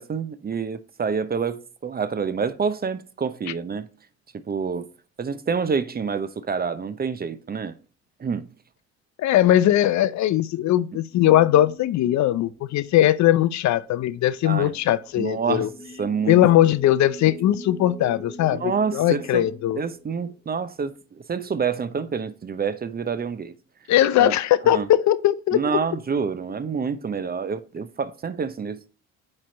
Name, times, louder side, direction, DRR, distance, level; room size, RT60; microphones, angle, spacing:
voice 1, 0.0-3.9 4.3-4.9 5.2-7.8 8.2-8.5 14.4-14.7 15.2-15.7 16.0-16.4 18.5-19.5 19.7-20.9 21.3-23.5 24.2-24.3 24.6-24.9 25.5-28.9, right 6 dB, 25° right, 0.6 m, -27 dB
voice 2, 9.2-15.7 16.3-19.8 23.9-25.8, left 13 dB, 55° left, 0.5 m, -20 dB
sound 1, 11.1-20.9, equal, 30° left, 2.1 m, -43 dB
8.5 x 3.3 x 4.1 m
hypercardioid pair, 60°, 35 cm